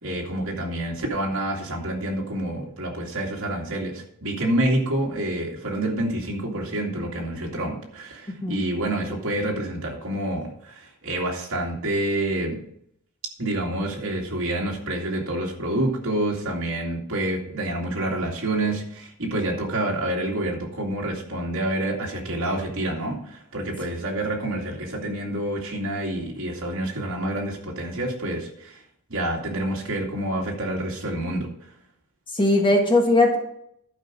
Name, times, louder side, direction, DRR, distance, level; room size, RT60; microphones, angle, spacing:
voice 1, 0.0-12.6 13.4-28.8 29.1-31.5, right 1 dB, 60° right, -1 dB, 2.5 m, -28 dB
voice 2, 8.3-8.6 32.3-33.4, left 2 dB, 20° left, 2 dB, 1.4 m, -19 dB
11.5 x 5.2 x 6.2 m, 0.71 s
head